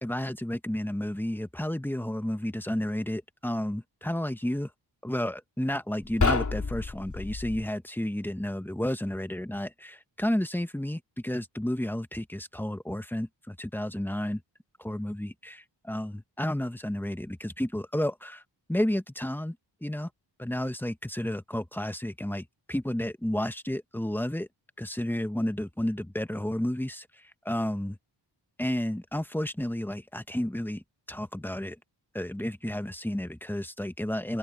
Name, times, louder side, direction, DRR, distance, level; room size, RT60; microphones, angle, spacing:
voice 1, 0.0-4.7 5.0-14.4 14.8-18.4 18.7-19.6 19.8-20.1 20.4-24.5 24.8-27.1 27.4-28.0 28.6-30.8 31.1-31.8 32.1-34.4, left 1 dB, 5° left, 1.2 m, -31 dB
sound 1, 6.0-7.7, left 4 dB, 40° left, 3.6 m, -28 dB
wide cardioid pair, 85°, 44 cm